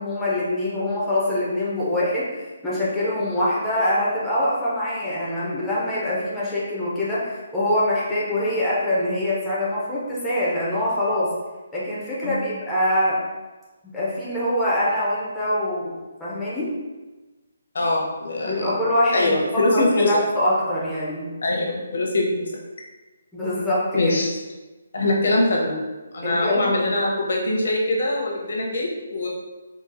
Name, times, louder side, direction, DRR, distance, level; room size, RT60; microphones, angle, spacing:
voice 1, 0.0-11.3 11.7-13.2 13.9-16.8 18.4-21.3 23.3-23.8 26.2-26.7, left 1 dB, 5° left, -9 dB, 0.4 m, -24 dB
voice 2, 17.7-18.8 19.1-20.1 21.4-22.5 23.9-24.4 24.9-25.8 26.1-29.3, left 2 dB, 65° left, -1 dB, 0.7 m, -23 dB
3.9 x 2.3 x 2.5 m, 1.2 s
hypercardioid pair, 175°, 0 cm